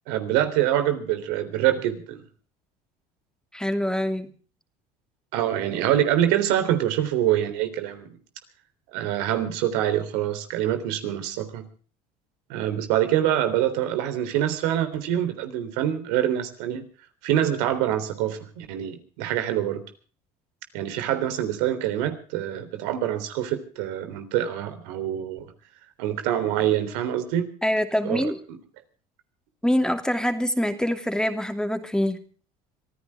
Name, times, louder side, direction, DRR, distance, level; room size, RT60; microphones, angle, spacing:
voice 1, 0.1-2.2 5.3-8.2 8.9-11.6 12.5-16.8 17.2-19.8 20.7-25.5 26.0-27.5 28.0-28.3, right 11 dB, 80° right, 9 dB, 3.6 m, -25 dB
voice 2, 3.5-4.3 27.6-28.4 29.6-32.2, equal, 5° left, 8 dB, 2.7 m, -25 dB
25.5 x 14.5 x 3.6 m, 0.40 s
supercardioid pair, 85°, 20 cm